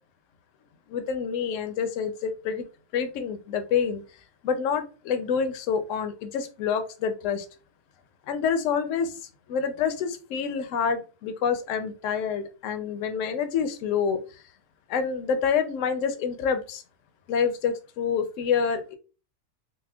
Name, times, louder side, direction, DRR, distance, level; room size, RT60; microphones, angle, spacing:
voice 1, 0.9-2.7 2.9-4.0 4.4-7.5 8.3-9.2 9.5-14.2 14.9-16.8 17.3-19.0, left 6 dB, 70° left, 0.9 m, -27 dB
4.2 x 2.0 x 2.3 m
omnidirectional pair, 1.5 m